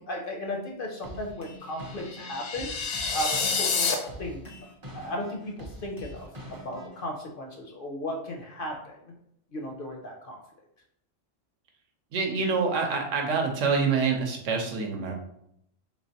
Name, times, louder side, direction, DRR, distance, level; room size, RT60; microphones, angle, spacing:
voice 1, 0.1-2.7 3.1-4.4 4.9-9.1 9.5-10.4, equal, 60° left, 1 dB, 0.6 m, -35 dB
sound 1, 1.0-7.0, right 1 dB, 35° right, 0.3 m, -44 dB
sound 2, 1.9-3.9, left 5 dB, 80° left, 0.9 m, -28 dB
voice 2, 12.1-15.1, right 5 dB, 85° right, 2 dB, 1.0 m, -26 dB
3.1 x 3.1 x 2.7 m, 0.74 s
omnidirectional pair, 1.3 m